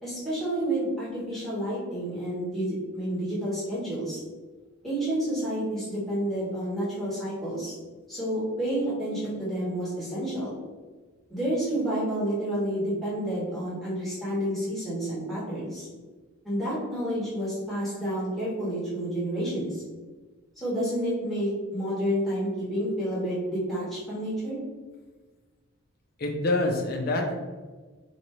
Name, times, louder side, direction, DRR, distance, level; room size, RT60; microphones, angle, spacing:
voice 1, 0.0-4.2 4.8-7.7 8.1-10.6 11.3-15.9 16.4-19.8 20.6-24.6, right 1 dB, ahead, -10 dB, 1.3 m, -29 dB
voice 2, 26.2-27.3, left 2 dB, 45° left, 2 dB, 0.5 m, -26 dB
3.3 x 2.8 x 3.0 m, 1.3 s
head